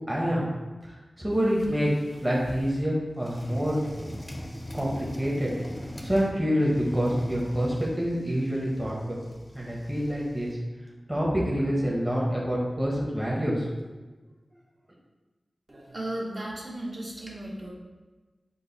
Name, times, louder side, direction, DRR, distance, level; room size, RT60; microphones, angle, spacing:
voice 1, 0.1-0.5 0.8-1.9 2.2-4.2 4.7-5.5 5.8-9.2 9.5-10.6 11.1-13.7, equal, 15° right, -4 dB, 0.9 m, -27 dB
sound 1, 1.3-2.9 3.3-6.4 6.7-10.5, equal, 30° left, 0.6 m, -41 dB
voice 2, 15.7-17.7, right 1 dB, 50° right, -5 dB, 1.1 m, -35 dB
5.4 x 2.1 x 3.9 m, 1.3 s
cardioid pair, 50°, 0 cm